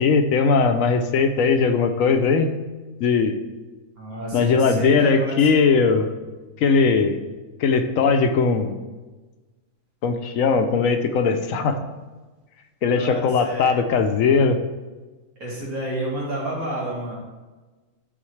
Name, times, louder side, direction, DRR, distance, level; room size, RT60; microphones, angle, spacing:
voice 1, 0.0-2.5 3.0-3.3 4.3-6.1 6.6-7.2 7.6-8.8 10.0-11.8 12.8-14.6, left 5 dB, 70° left, 7 dB, 1.0 m, -19 dB
voice 2, 4.0-5.3 12.8-13.8 15.4-17.2, right 1 dB, 80° right, -5 dB, 2.6 m, -30 dB
11.0 x 4.1 x 3.2 m, 1.2 s
omnidirectional pair, 1.5 m